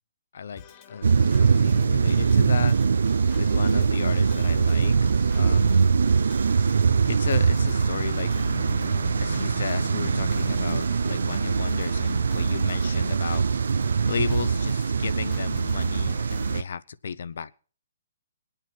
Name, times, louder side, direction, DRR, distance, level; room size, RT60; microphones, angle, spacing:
voice 1, 0.3-2.8 3.4-5.9 7.1-8.6 9.2-13.4 14.1-17.5, left 6 dB, 70° left, 16 dB, 0.7 m, -34 dB
Organ, 0.6-16.6, left 7 dB, 30° left, 1.6 m, -48 dB
sound 1, 1.0-16.6, right 5 dB, 90° right, 0.5 m, -22 dB
Bowed string instrument, 7.7-12.2, left 5 dB, 85° left, 2.3 m, -40 dB
21.0 x 9.0 x 4.4 m, 0.40 s
hypercardioid pair, 160°, 0 cm